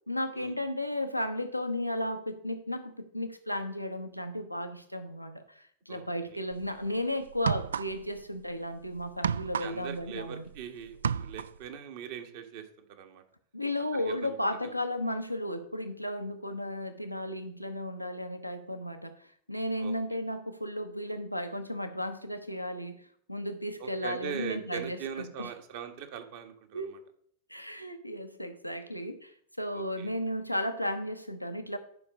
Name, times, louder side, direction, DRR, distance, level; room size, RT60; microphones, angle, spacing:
voice 1, 0.1-10.5 13.5-23.0 23.3-25.5 26.7-26.9 27.5-31.8, left 1 dB, 90° left, 6 dB, 0.8 m, -34 dB
voice 2, 5.9-6.4 9.6-13.2 13.9-14.4 19.8-19.9 23.8-27.0 29.7-30.1, right 8 dB, 50° right, 6 dB, 1.4 m, -41 dB
sound 1, 6.5-6.7 7.3-8.2 8.5-10.6 10.9-11.7, right 7 dB, 70° right, 0.3 m, -32 dB
11.0 x 5.3 x 4.9 m, 0.64 s
figure-of-eight pair, 90°, 0 cm